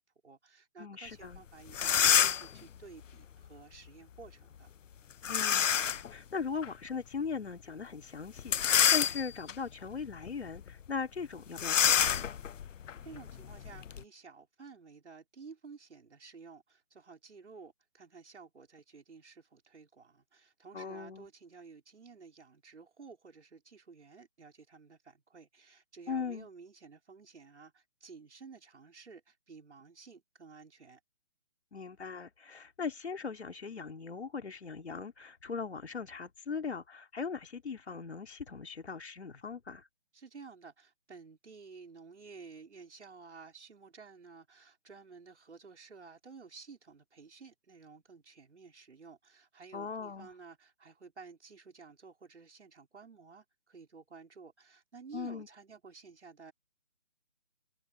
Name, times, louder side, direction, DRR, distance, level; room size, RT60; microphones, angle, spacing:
voice 1, 0.0-4.7 13.0-31.0 40.1-56.5, right 5 dB, 65° right, 4.9 m, -53 dB
voice 2, 0.8-1.4 5.3-12.4 20.7-21.3 26.1-26.5 31.7-39.9 49.7-50.3 55.1-55.5, left 5 dB, 60° left, 3.6 m, -39 dB
sound 1, 1.3-1.4 1.7-2.6 5.2-6.1 6.6-6.7 8.4-9.5 10.1-10.3 10.5-10.7 11.6-14.0, left 8 dB, 85° left, 0.7 m, -27 dB
hypercardioid pair, 180°, 37 cm